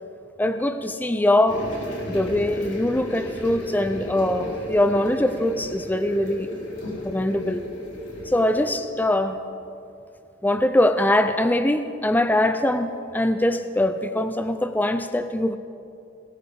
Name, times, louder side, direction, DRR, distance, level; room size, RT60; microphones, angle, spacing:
voice 1, 0.4-1.7 2.1-6.5 7.0-7.6 8.3-9.4 10.4-15.6, left 1 dB, 10° left, 9 dB, 0.5 m, -22 dB
sound 1, 1.5-8.7, left 1 dB, 80° left, 3.8 m, -34 dB
21.5 x 18.0 x 3.5 m, 2.6 s
head